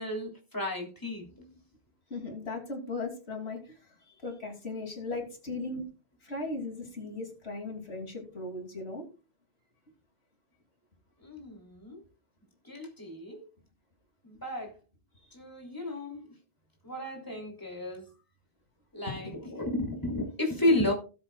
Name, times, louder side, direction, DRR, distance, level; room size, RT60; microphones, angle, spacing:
voice 1, 0.0-1.5 11.2-12.0 12.6-13.4 14.2-14.7 15.3-16.3 16.8-18.1 18.9-20.9, left 1 dB, 20° left, 0 dB, 3.3 m, -32 dB
voice 2, 2.1-3.8 4.2-5.9 6.2-9.0, left 2 dB, 80° left, 1 dB, 3.2 m, -37 dB
19.0 x 8.0 x 2.4 m, 0.33 s
omnidirectional pair, 1.1 m